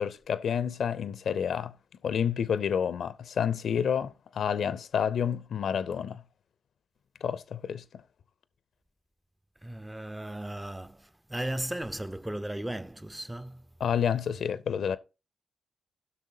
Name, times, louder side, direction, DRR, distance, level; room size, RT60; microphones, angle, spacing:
voice 1, 0.0-1.7 2.0-6.2 7.2-7.8 13.8-15.0, left 8 dB, 65° left, 0.5 m, -29 dB
voice 2, 9.6-13.7, right 1 dB, 10° right, 0.4 m, -36 dB
15.5 x 6.0 x 2.7 m
hypercardioid pair, 40°, 0 cm